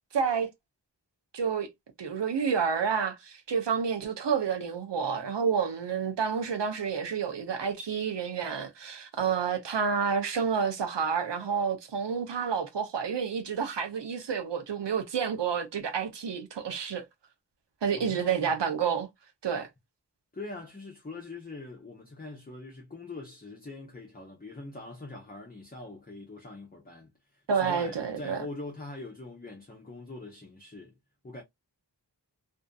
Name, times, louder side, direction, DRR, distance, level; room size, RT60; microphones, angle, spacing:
voice 1, 0.1-0.5 1.3-1.7 2.0-17.0 17.8-19.1 19.4-19.7 27.5-28.5, right 6 dB, 85° right, 0.7 m, -29 dB
voice 2, 18.0-18.6 20.3-30.9 31.2-31.4, left 2 dB, 20° left, 0.7 m, -43 dB
2.6 x 2.5 x 2.2 m
wide cardioid pair, 50°, 41 cm